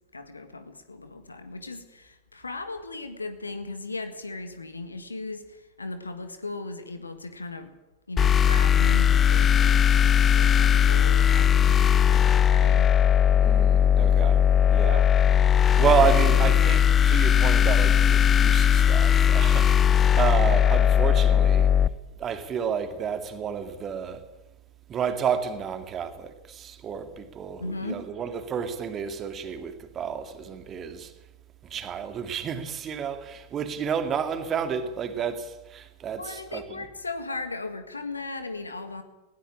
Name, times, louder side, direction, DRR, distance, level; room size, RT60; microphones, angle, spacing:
voice 1, 0.1-7.7 8.1-12.9 27.6-28.1 36.2-39.0, left 3 dB, 80° left, 1.8 m, -37 dB
sound 1, 8.2-21.9, left 9 dB, 25° left, 0.7 m, -19 dB
voice 2, 13.4-15.1 15.4-21.7 22.2-24.2 24.9-31.1 31.6-36.8, right 7 dB, 25° right, 2.3 m, -30 dB
19.5 x 17.0 x 8.8 m
figure-of-eight pair, 90°, 0 cm